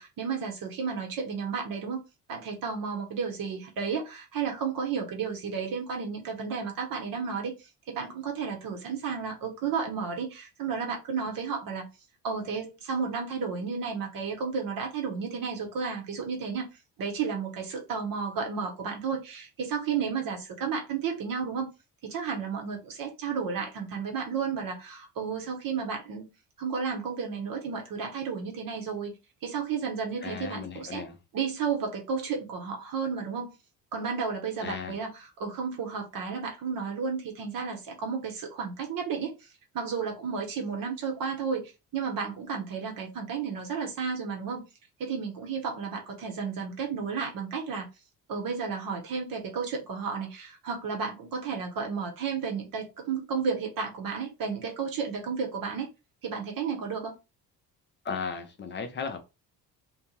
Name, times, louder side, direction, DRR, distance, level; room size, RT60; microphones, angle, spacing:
voice 1, 0.0-2.0 2.3-11.9 12.2-16.6 17.0-21.7 22.0-26.3 26.6-29.1 29.4-31.0 31.3-33.5 33.9-39.5 39.7-44.6 45.0-47.9 48.3-55.9 56.2-57.1, right 5 dB, 45° right, 0.9 m, -32 dB
voice 2, 30.2-31.2 34.6-35.0 58.0-59.2, left 5 dB, 25° left, 0.7 m, -35 dB
2.6 x 2.1 x 3.1 m
figure-of-eight pair, 50°, 49 cm